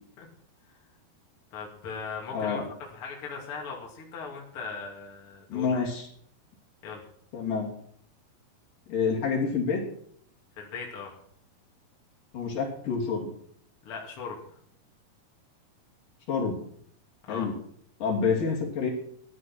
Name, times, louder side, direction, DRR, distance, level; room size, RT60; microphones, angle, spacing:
voice 1, 1.5-2.6 2.9-5.9 6.8-7.0 10.6-11.1 13.8-14.4 17.3-17.5, left 5 dB, 40° left, -1 dB, 3.1 m, -38 dB
voice 2, 2.3-2.7 5.5-6.1 7.3-7.7 8.9-9.8 12.3-13.3 16.3-16.6 17.3-17.5 18.0-18.9, left 5 dB, 60° left, -1 dB, 4.3 m, -28 dB
14.0 x 11.0 x 6.2 m, 0.64 s
omnidirectional pair, 4.5 m